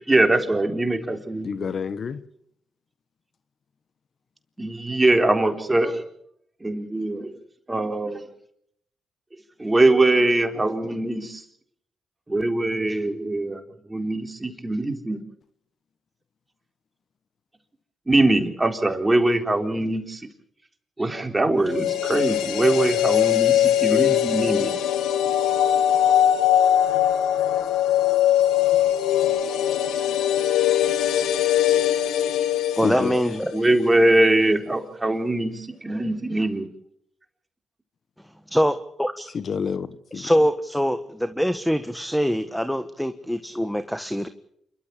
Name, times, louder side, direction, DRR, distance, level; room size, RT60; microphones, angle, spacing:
voice 1, 0.1-1.7 4.6-6.0 6.6-7.3 7.7-8.3 9.6-11.4 12.3-13.6 13.9-15.2 18.1-20.2 21.0-24.7 33.5-36.7, right 2 dB, 20° right, 3.9 m, -22 dB
voice 2, 1.4-2.2 32.8-33.1 39.3-40.3, left 6 dB, 60° left, 1.2 m, -28 dB
sound 1, 21.7-33.8 34.0-34.1, left 11 dB, 85° left, 1.9 m, -21 dB
voice 3, 32.8-33.5 38.5-39.3 40.1-44.3, equal, ahead, 1.4 m, -24 dB
28.0 x 13.0 x 8.7 m
supercardioid pair, 55°, 0 cm